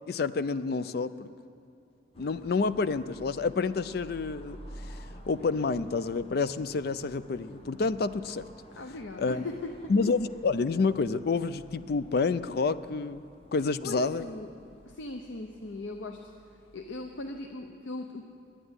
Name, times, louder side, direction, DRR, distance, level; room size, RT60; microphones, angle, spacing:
voice 1, 0.1-1.3 2.2-4.6 4.9-5.0 5.3-8.5 9.2-9.4 9.9-13.2 13.5-14.3, left 4 dB, 55° left, 15 dB, 0.4 m, -28 dB
sound 1, 2.1-17.5, right 1 dB, 30° left, 1.0 m, -51 dB
voice 2, 8.8-9.7 13.8-14.5 14.9-16.2 16.7-18.3, left 2 dB, 90° left, 4 dB, 0.7 m, -39 dB
11.0 x 9.9 x 9.7 m, 2.6 s
head